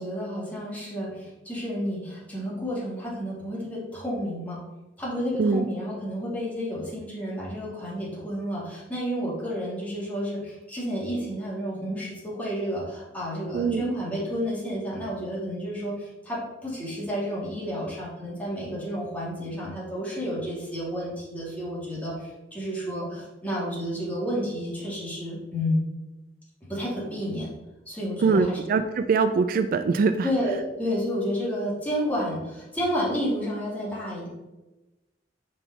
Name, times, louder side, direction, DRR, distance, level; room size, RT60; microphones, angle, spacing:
voice 1, 0.0-4.6 5.0-25.8 26.7-27.5 27.9-28.6 30.2-34.3, equal, 10° left, -7 dB, 2.4 m, -31 dB
voice 2, 13.5-13.9 28.2-30.1, right 5 dB, 50° right, 9 dB, 0.3 m, -22 dB
5.3 x 4.2 x 5.5 m, 1.0 s
head